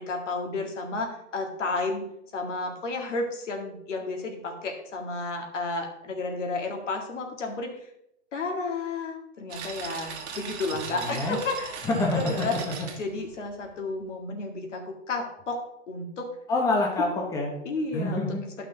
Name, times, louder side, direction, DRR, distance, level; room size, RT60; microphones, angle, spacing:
voice 1, 0.0-2.1 2.3-7.7 8.3-11.8 12.2-12.6 13.0-15.6 15.9-16.3 17.6-18.3 18.6-18.7, left 3 dB, 85° left, 2 dB, 2.1 m, -32 dB
sound 1, 9.5-13.8, right 6 dB, 65° right, 1.7 m, -39 dB
voice 2, 10.9-11.4 11.8-12.9 16.5-17.5 17.9-18.4, left 2 dB, 10° left, -1 dB, 1.0 m, -27 dB
10.5 x 5.8 x 3.9 m, 0.79 s
hypercardioid pair, 155°, 35 cm